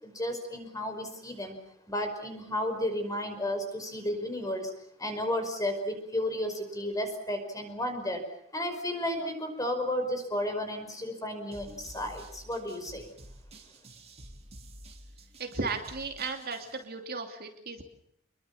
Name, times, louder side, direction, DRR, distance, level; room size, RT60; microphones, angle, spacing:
voice 1, 0.0-1.6 1.9-4.7 5.0-8.3 8.5-13.1, left 1 dB, 15° left, 6 dB, 5.3 m, -33 dB
sound 1, 11.5-16.8, right 1 dB, 30° right, 3.2 m, -50 dB
voice 2, 15.4-17.8, right 4 dB, 45° right, 4 dB, 2.8 m, -35 dB
28.0 x 22.5 x 7.2 m, 0.74 s
head